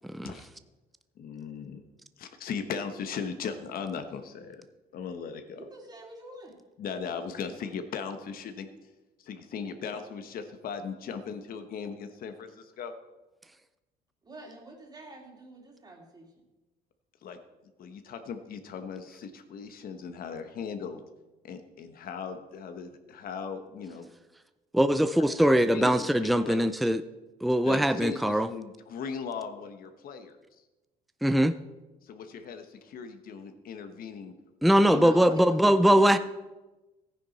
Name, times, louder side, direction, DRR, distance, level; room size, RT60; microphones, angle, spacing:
voice 1, 1.2-1.8 2.2-4.7 4.9-5.7 6.8-8.7 9.2-12.9 17.2-17.4 17.8-21.0 21.4-24.0 25.2-26.9 27.6-30.3 32.0-34.3 34.8-35.4, left 6 dB, 60° left, 8 dB, 1.3 m, -38 dB
voice 2, 5.6-6.6 14.2-16.4 35.0-36.2, right 2 dB, 25° right, 1 dB, 2.7 m, -46 dB
voice 3, 24.7-27.0 27.4-28.5 31.2-31.5 34.6-36.2, equal, ahead, 11 dB, 0.5 m, -22 dB
14.5 x 9.9 x 4.2 m, 1.1 s
cardioid pair, 110°, 17 cm